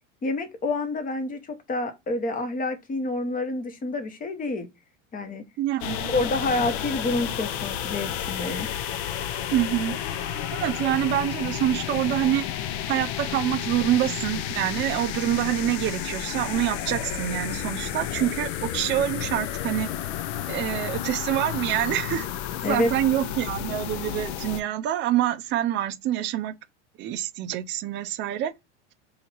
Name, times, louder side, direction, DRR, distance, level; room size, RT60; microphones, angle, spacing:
voice 1, 0.2-4.7 5.1-5.4 6.1-8.7 22.6-22.9, left 2 dB, 20° left, 1.0 m, -28 dB
voice 2, 5.6-6.1 9.5-10.0 10.5-12.5 12.9-19.9 20.5-22.3 22.6-26.5 27.0-28.5, right 12 dB, 30° right, 0.4 m, -26 dB
sound 1, 5.8-24.6, left 10 dB, 60° left, 0.6 m, -31 dB
2.8 x 2.8 x 4.4 m
hypercardioid pair, 100°, 37 cm